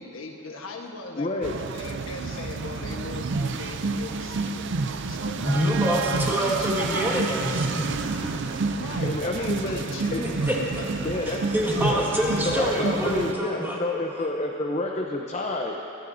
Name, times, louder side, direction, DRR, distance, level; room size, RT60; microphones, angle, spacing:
voice 1, 0.0-4.7 5.1-5.7 6.1-7.1 8.8-11.1, left 2 dB, 85° left, 1 dB, 1.3 m, -39 dB
voice 2, 1.2-1.5 9.0-9.8 10.1-10.2 11.0-11.4 11.8-12.1 12.4-15.8, left 2 dB, 35° left, 0 dB, 0.7 m, -29 dB
sound 1, 1.4-13.3, right 4 dB, 60° right, 0.5 m, -29 dB
voice 3, 5.5-8.8 10.2-10.6 11.3-13.8, equal, 10° right, -4 dB, 1.8 m, -27 dB
24.0 x 12.5 x 2.7 m, 3.0 s
head